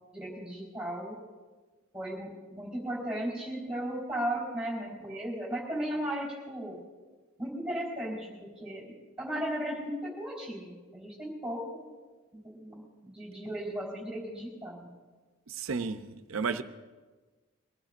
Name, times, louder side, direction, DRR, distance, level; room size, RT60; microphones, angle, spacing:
voice 1, 0.1-1.2 1.9-6.8 7.4-8.3 8.6-8.9 9.2-11.9 12.4-14.9, right 1 dB, 5° right, 4.1 m, -36 dB
voice 2, 15.5-16.6, right 5 dB, 75° right, 0.6 m, -33 dB
23.5 x 16.0 x 2.5 m
head